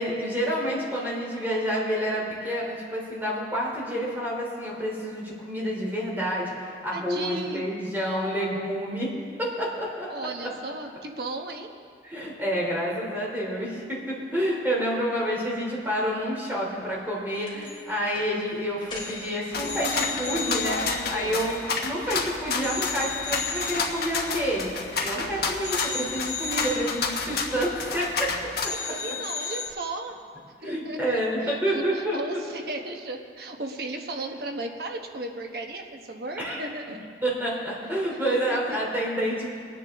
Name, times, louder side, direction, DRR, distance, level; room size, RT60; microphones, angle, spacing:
voice 1, 0.0-9.1 9.4-10.1 12.0-24.7 25.0-28.3 28.6-28.7 30.6-32.4 36.4-36.7 37.2-39.5, equal, 10° right, -5 dB, 3.1 m, -29 dB
voice 2, 6.9-7.7 10.1-11.7 28.7-30.2 30.6-37.1 38.3-38.8, right 2 dB, 60° right, 3 dB, 1.2 m, -35 dB
sound 1, 17.5-17.9 18.2-18.4 18.8-22.2 22.6-25.2 25.6-28.3 28.6-29.7, left 5 dB, 25° left, 3.2 m, -36 dB
sound 2, 19.5-28.7, left 4 dB, 60° left, 1.3 m, -30 dB
23.5 x 9.7 x 3.6 m, 2.2 s
head